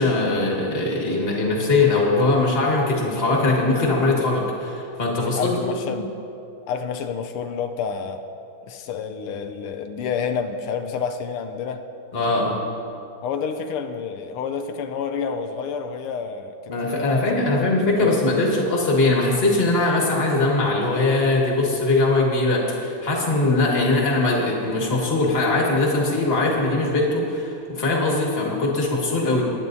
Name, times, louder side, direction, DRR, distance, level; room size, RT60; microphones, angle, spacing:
voice 1, 0.0-5.5 5.8-6.0 12.1-12.6 16.7-29.4, left 2 dB, 30° left, -2 dB, 1.8 m, -21 dB
voice 2, 5.2-6.1 6.7-8.2 8.7-11.8 13.2-18.1, left 6 dB, 85° left, 6 dB, 1.6 m, -29 dB
21.0 x 9.9 x 2.7 m, 2.7 s
omnidirectional pair, 2.4 m